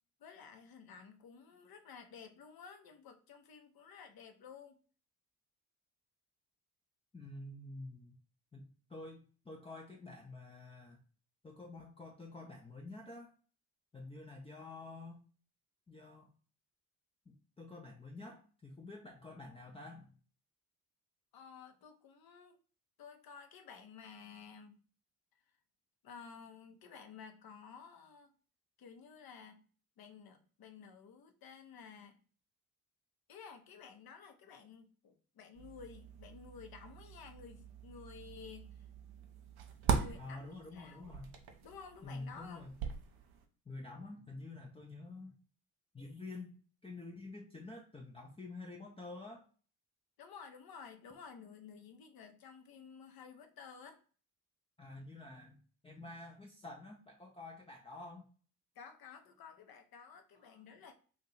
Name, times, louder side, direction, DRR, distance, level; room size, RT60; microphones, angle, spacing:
voice 1, 0.2-4.8 21.3-22.6 23.0-24.8 26.0-28.3 28.8-29.7 30.0-32.2 33.3-38.8 39.9-41.1 41.6-42.6 50.2-54.0 58.8-60.9, left 6 dB, 50° left, 6 dB, 0.9 m, -53 dB
voice 2, 7.1-8.1 8.5-11.0 11.4-13.3 13.9-15.2 15.9-16.3 17.3-20.1 40.2-41.4 42.0-42.8 43.7-45.4 45.9-46.6 46.8-49.4 54.8-58.3 60.4-60.6, left 2 dB, 15° left, 0 dB, 0.6 m, -49 dB
sound 1, 35.5-43.5, right 6 dB, 55° right, 0.8 m, -41 dB
2.7 x 2.4 x 4.1 m, 0.40 s
hypercardioid pair, 55°, 45 cm